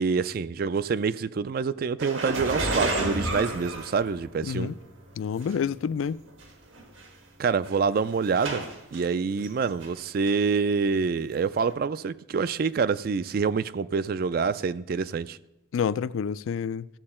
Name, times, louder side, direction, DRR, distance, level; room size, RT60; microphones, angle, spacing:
voice 1, 0.0-4.7 7.4-8.6 8.9-15.4, right 5 dB, 45° right, 0.3 m, -26 dB
sound 1, 2.0-4.6 5.4-5.5 6.4-6.5 6.8-7.1 7.6-9.0 9.4-10.0 10.3-10.4 11.6-11.7, right 2 dB, 75° right, 1.6 m, -30 dB
voice 2, 4.4-4.8 5.2-6.2 15.7-16.9, left 7 dB, 80° left, 0.3 m, -28 dB
14.5 x 7.6 x 4.3 m
head